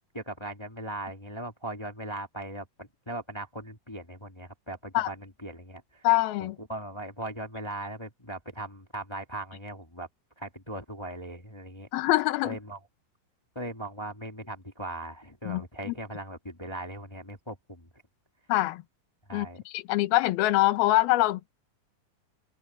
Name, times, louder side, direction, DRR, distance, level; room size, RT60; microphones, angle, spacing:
voice 1, 0.1-6.1 6.4-10.1 10.4-11.9 12.4-12.8 13.5-17.9 19.3-19.6, right 1 dB, 25° left, 0.6 m, -39 dB
voice 2, 6.0-6.6 11.9-12.6 15.5-15.9 18.5-18.8 19.3-21.5, left 17 dB, 80° left, 2.9 m, -24 dB
omnidirectional pair, 4.4 m